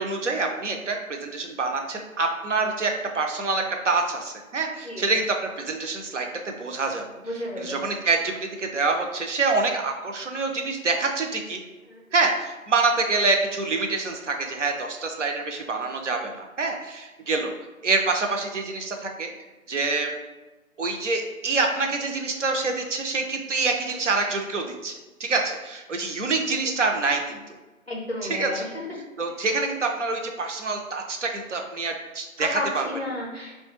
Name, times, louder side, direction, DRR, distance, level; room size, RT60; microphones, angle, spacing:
voice 1, 0.0-7.0 7.6-11.6 12.1-17.5 17.8-19.3 19.7-20.1 20.8-24.9 25.2-27.6 28.3-28.7 29.2-32.9, right 3 dB, 60° right, 3 dB, 0.5 m, -26 dB
voice 2, 7.2-7.8 11.9-12.0 27.9-28.7 32.4-33.5, left 1 dB, 50° left, -3 dB, 0.5 m, -32 dB
3.2 x 2.2 x 3.0 m, 1.1 s
figure-of-eight pair, 170°, 42 cm